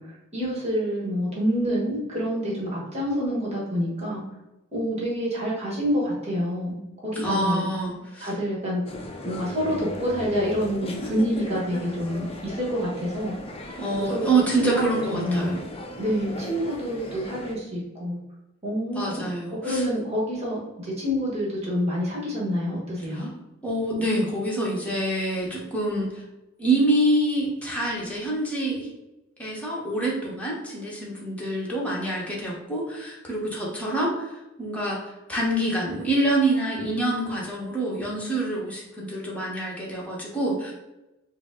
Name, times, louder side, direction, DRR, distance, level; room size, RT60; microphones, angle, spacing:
voice 1, 0.0-4.2 4.7-7.7 8.2-8.8 9.2-13.4 14.0-14.3 14.6-15.6 16.0-18.2 18.6-23.3, equal, 35° right, -5 dB, 1.2 m, -27 dB
voice 2, 7.1-8.3 13.8-15.6 18.9-19.8 23.1-23.3 23.6-26.1 26.6-28.9 29.4-34.3 34.6-40.7, right 1 dB, 5° left, -4 dB, 1.0 m, -26 dB
sound 1, 8.9-17.6, left 1 dB, 30° left, 0.5 m, -37 dB
4.9 x 2.0 x 3.6 m, 0.96 s
head